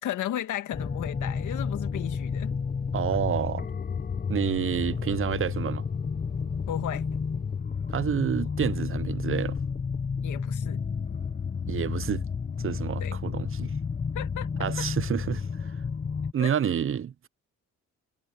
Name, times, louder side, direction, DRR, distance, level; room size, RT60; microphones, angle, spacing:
voice 1, 0.0-2.5 6.7-7.2 10.2-10.8 13.0-13.2 14.1-14.9 16.4-16.5, left 12 dB, 80° left, 2.1 m, -35 dB
sound 1, 0.7-16.3, left 6 dB, 30° left, 1.2 m, -31 dB
voice 2, 2.9-3.7 4.3-5.9 7.9-9.6 11.7-12.2 12.6-13.8 14.6-15.7 16.3-17.3, right 9 dB, 45° right, 0.9 m, -29 dB
cardioid pair, 90°, 30 cm